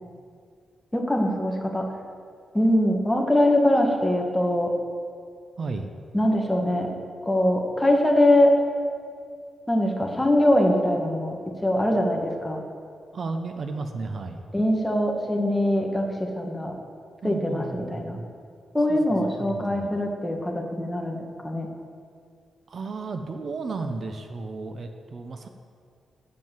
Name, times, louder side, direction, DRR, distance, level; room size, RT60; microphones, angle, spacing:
voice 1, 0.9-1.9 2.5-4.7 6.1-6.9 7.2-8.5 9.7-11.3 11.6-12.6 14.5-16.7 17.2-18.2 18.7-21.7, left 1 dB, 10° left, 1 dB, 1.5 m, -22 dB
voice 2, 5.6-5.9 13.1-14.4 17.2-18.3 18.9-19.0 19.4-19.9 22.7-25.5, right 3 dB, 55° right, 6 dB, 0.7 m, -33 dB
7.6 x 7.4 x 7.4 m, 2.2 s
cardioid pair, 85°, 0 cm